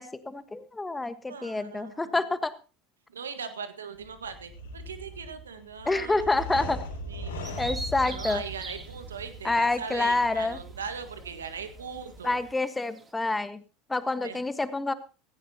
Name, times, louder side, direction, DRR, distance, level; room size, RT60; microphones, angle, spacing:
voice 1, 0.0-2.5 5.8-6.8 7.6-8.4 9.4-10.6 12.2-13.6 13.9-14.9, left 2 dB, 15° left, 12 dB, 1.4 m, -27 dB
voice 2, 1.3-2.2 3.1-6.7 7.1-7.5 8.0-12.4 14.2-14.4, right 6 dB, 85° right, 10 dB, 1.6 m, -40 dB
sound 1, 3.9-12.5, equal, 80° left, 3.3 m, -40 dB
Bird vocalization bird call bird song, 7.4-13.1, right 3 dB, 20° right, 2.9 m, -44 dB
17.0 x 15.5 x 2.9 m, 0.33 s
hypercardioid pair, 80°, 0 cm